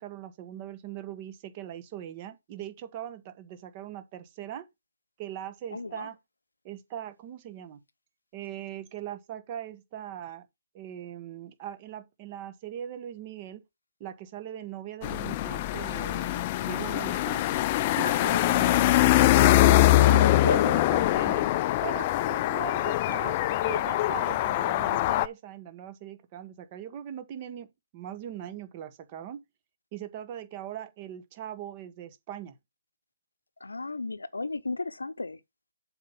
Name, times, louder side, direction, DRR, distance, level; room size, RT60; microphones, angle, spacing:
voice 1, 0.0-4.7 5.2-6.2 6.6-7.8 8.3-10.4 10.7-13.6 14.0-17.4 17.9-18.9 19.6-21.5 21.8-27.7 27.9-29.4 29.9-32.5, right 10 dB, 30° right, 1.2 m, -40 dB
voice 2, 5.7-6.1 18.0-18.4 19.9-20.8 33.6-35.4, left 3 dB, 80° left, 0.8 m, -33 dB
sound 1, 15.0-25.3, left 15 dB, 30° left, 0.5 m, -23 dB
7.5 x 4.5 x 5.7 m
figure-of-eight pair, 140°, 0 cm